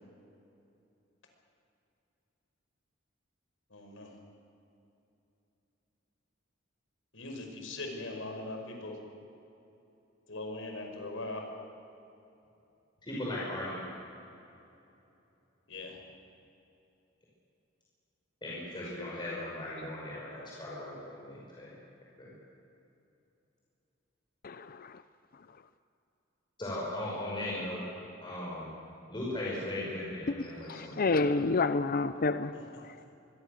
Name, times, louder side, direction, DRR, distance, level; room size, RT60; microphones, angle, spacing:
voice 1, 3.7-4.1 7.1-9.0 10.3-11.4 15.7-16.0 32.5-32.6, left 2 dB, 85° left, 3 dB, 5.3 m, -40 dB
voice 2, 13.0-13.9 18.4-21.7 22.2-22.3 26.6-27.8 28.2-28.7 29.1-31.3, left 1 dB, 25° left, -6 dB, 5.6 m, -38 dB
voice 3, 24.4-25.0 30.5-32.9, left 3 dB, 50° left, 12 dB, 0.6 m, -30 dB
25.0 x 22.0 x 6.6 m, 2.8 s
head